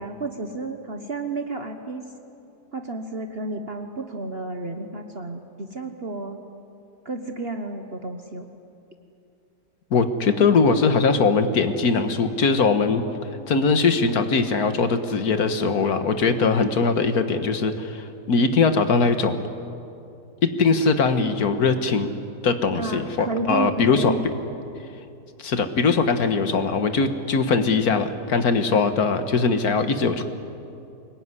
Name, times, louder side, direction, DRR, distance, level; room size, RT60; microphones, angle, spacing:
voice 1, 0.0-2.1 2.7-6.4 7.0-8.5 22.7-24.3, right 3 dB, 40° right, 5 dB, 1.3 m, -31 dB
voice 2, 9.9-13.0 13.5-19.4 20.6-22.1 22.4-24.1 25.4-30.2, left 4 dB, 60° left, 8 dB, 1.8 m, -21 dB
24.5 x 21.0 x 9.8 m, 2.7 s
omnidirectional pair, 1.8 m